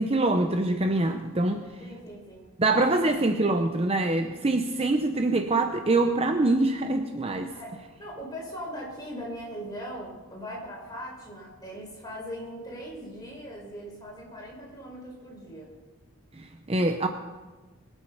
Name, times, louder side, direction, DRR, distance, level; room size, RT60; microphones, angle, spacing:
voice 1, 0.0-1.7 2.6-7.5 16.4-17.1, right 2 dB, 25° right, 6 dB, 0.7 m, -24 dB
voice 2, 1.8-2.5 7.5-15.7, equal, 15° left, -3 dB, 4.8 m, -40 dB
22.5 x 8.1 x 5.6 m, 1.3 s
head